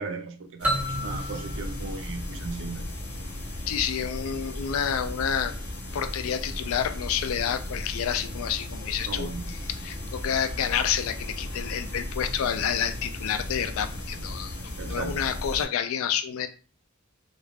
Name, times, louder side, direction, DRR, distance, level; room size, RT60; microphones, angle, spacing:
voice 1, 0.0-2.8 9.1-9.4 14.8-15.2, right 4 dB, 65° right, 0.5 m, -36 dB
sound 1, 0.6-15.7, left 1 dB, 50° left, 0.7 m, -36 dB
sound 2, 0.6-3.3, equal, 5° right, 0.6 m, -32 dB
voice 2, 3.7-5.5 5.9-16.5, left 8 dB, 75° left, 0.3 m, -29 dB
2.4 x 2.2 x 3.3 m
head